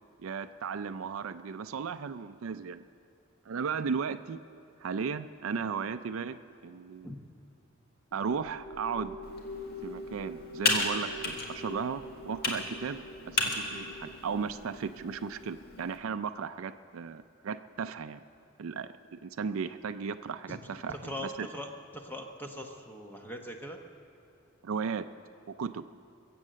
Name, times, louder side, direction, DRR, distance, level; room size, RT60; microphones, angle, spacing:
voice 1, 0.2-2.8 3.5-4.4 4.8-7.1 8.1-9.2 9.8-18.2 18.6-21.5 24.6-25.1 25.6-25.9, right 6 dB, 70° right, 10 dB, 0.4 m, -35 dB
sound 1, 8.1-15.7, left 1 dB, 70° left, 2.1 m, -45 dB
Computer keyboard, 9.2-16.0, left 3 dB, 50° left, 1.7 m, -35 dB
voice 2, 20.9-23.8, equal, 10° left, 3 dB, 1.0 m, -41 dB
22.0 x 7.8 x 7.5 m, 2.5 s
head